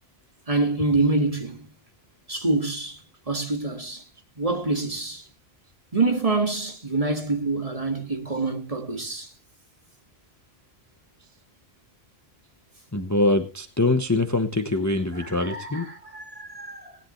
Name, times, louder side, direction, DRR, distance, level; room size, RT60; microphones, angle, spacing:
voice 1, 0.5-1.7 2.3-3.0 3.3-4.0 4.4-5.2 5.9-9.3 15.1-17.0, right 3 dB, 30° right, 2.1 m, -26 dB
voice 2, 12.9-15.9, left 2 dB, 15° left, 1.0 m, -23 dB
19.5 x 10.5 x 3.2 m
omnidirectional pair, 1.1 m